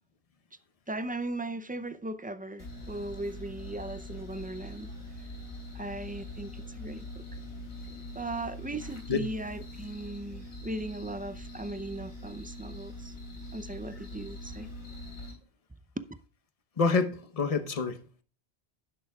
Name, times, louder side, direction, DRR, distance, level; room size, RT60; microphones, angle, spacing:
voice 1, 0.9-4.9 5.7-7.2 8.1-13.1 13.5-14.7 16.0-16.1, right 1 dB, 15° right, 0.3 m, -38 dB
sound 1, 2.6-15.3, left 1 dB, 60° left, 3.7 m, -43 dB
voice 2, 16.8-18.2, left 4 dB, 35° left, 1.0 m, -28 dB
11.5 x 10.5 x 2.3 m
omnidirectional pair, 1.1 m